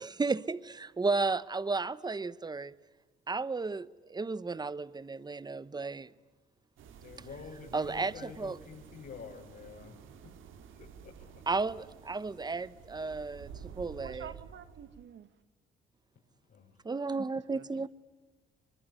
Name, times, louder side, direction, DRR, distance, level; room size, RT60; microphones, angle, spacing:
voice 1, 0.0-2.7 3.3-6.1 7.7-8.6 11.5-14.3 16.8-17.9, right 3 dB, 20° right, 1.0 m, -33 dB
sound 1, 6.8-15.1, right 7 dB, 80° right, 2.6 m, -51 dB
voice 2, 7.0-10.4 10.8-11.4 16.5-16.8, left 5 dB, 60° left, 5.7 m, -48 dB
voice 3, 14.0-15.3 17.5-17.9, right 8 dB, 65° right, 2.0 m, -48 dB
24.0 x 22.5 x 9.6 m
cardioid pair, 90°, 20 cm